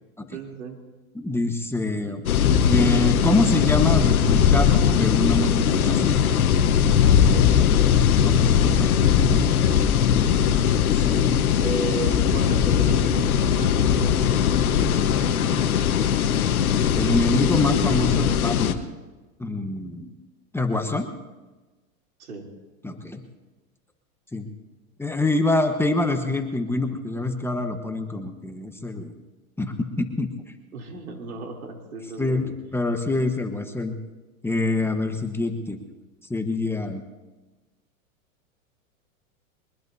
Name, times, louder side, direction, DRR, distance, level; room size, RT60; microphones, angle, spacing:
voice 1, 0.3-0.8 7.3-7.9 10.0-10.5 11.6-15.5 22.2-22.5 30.7-32.5, right 4 dB, 90° right, 1 dB, 3.3 m, -35 dB
voice 2, 1.1-2.3 2.7-6.2 8.2-9.4 10.9-11.3 16.9-18.8 19.4-20.1 20.5-21.1 22.8-23.2 24.3-24.5 25.0-29.1 29.6-30.3 32.2-33.9 34.4-35.8 36.3-37.0, left 2 dB, 5° left, 5 dB, 1.2 m, -25 dB
sound 1, 2.3-18.7, left 8 dB, 85° left, 1.3 m, -20 dB
23.0 x 20.5 x 2.8 m, 1.2 s
hypercardioid pair, 115°, 42 cm